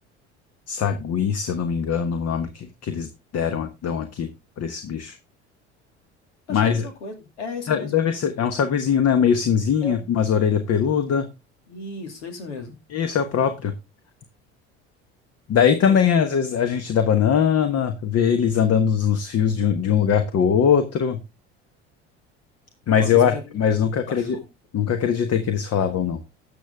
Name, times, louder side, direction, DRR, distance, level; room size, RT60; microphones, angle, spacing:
voice 1, 0.7-4.3 4.6-5.2 6.5-6.9 7.7-11.2 12.9-13.7 15.5-21.2 22.9-24.4 24.7-26.2, left 7 dB, 45° left, 1.4 m, -21 dB
voice 2, 6.5-8.0 9.8-10.0 11.7-12.8 15.9-16.1 23.0-24.5, left 3 dB, 85° left, 2.6 m, -36 dB
13.0 x 7.1 x 3.5 m
hypercardioid pair, 65°, 34 cm